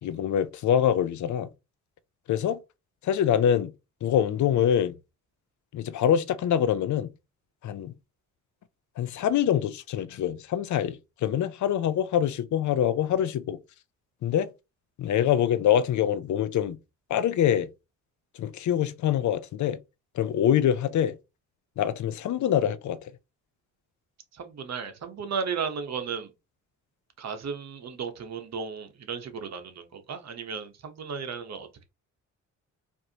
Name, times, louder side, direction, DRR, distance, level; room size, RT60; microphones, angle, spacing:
voice 1, 0.0-1.5 2.3-2.6 3.0-3.7 4.0-4.9 5.7-7.1 7.6-7.9 9.0-13.6 14.2-14.5 15.0-16.8 17.1-17.7 18.4-19.8 20.1-21.1 21.8-23.1, left 9 dB, 60° left, 0.6 m, -25 dB
voice 2, 24.3-26.3 27.2-31.8, right 6 dB, 55° right, 1.0 m, -35 dB
4.6 x 2.7 x 2.8 m
cardioid pair, 75°, 33 cm